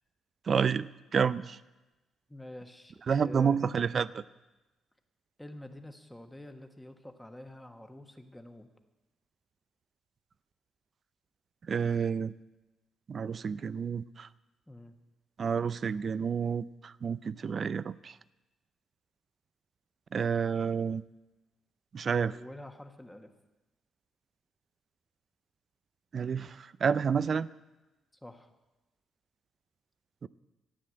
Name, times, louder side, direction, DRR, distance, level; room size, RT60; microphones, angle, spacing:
voice 1, 0.5-1.6 3.1-4.2 11.7-12.3 13.1-14.3 15.4-18.1 20.1-21.0 21.9-22.3 26.1-27.5 30.2-30.3, right 6 dB, 45° right, 17 dB, 0.4 m, -29 dB
voice 2, 2.3-3.6 5.4-8.7 14.7-14.9 22.2-23.3 28.2-28.5, left 1 dB, 5° left, 6 dB, 1.4 m, -47 dB
13.0 x 9.8 x 7.7 m, 1.1 s
cardioid pair, 90°, 0 cm